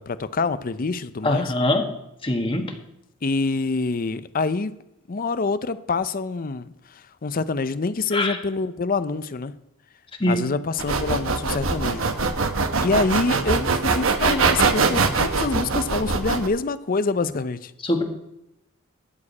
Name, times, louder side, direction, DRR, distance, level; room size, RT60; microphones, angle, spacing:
voice 1, 0.0-1.5 3.2-4.7 5.1-6.7 6.9-9.5 10.3-12.1 12.8-17.7, left 3 dB, 45° left, 14 dB, 0.6 m, -26 dB
voice 2, 1.2-1.8 2.2-2.7 8.1-8.4 10.2-10.4 17.8-18.0, left 1 dB, 25° left, 4 dB, 1.4 m, -22 dB
sound 1, 10.8-16.5, right 4 dB, 70° right, 1.0 m, -22 dB
12.5 x 5.0 x 8.5 m, 0.84 s
head